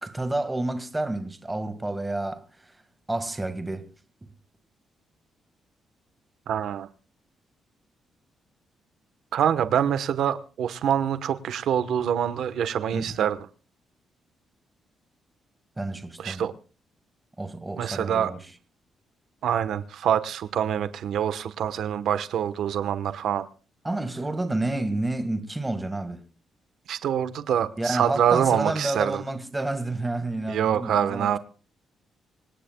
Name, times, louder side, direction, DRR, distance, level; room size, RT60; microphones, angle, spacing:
voice 1, 0.0-2.4 3.1-3.9 4.2-4.3 12.9-13.2 15.8-16.5 17.4-18.4 23.8-26.2 27.8-31.4, right 2 dB, 10° right, 1.7 m, -30 dB
voice 2, 6.5-6.9 9.3-13.4 16.2-16.5 17.8-18.3 19.4-23.4 26.9-29.2 30.5-31.4, right 9 dB, 70° right, 1.1 m, -25 dB
26.0 x 18.0 x 2.3 m
cardioid pair, 150°, 0 cm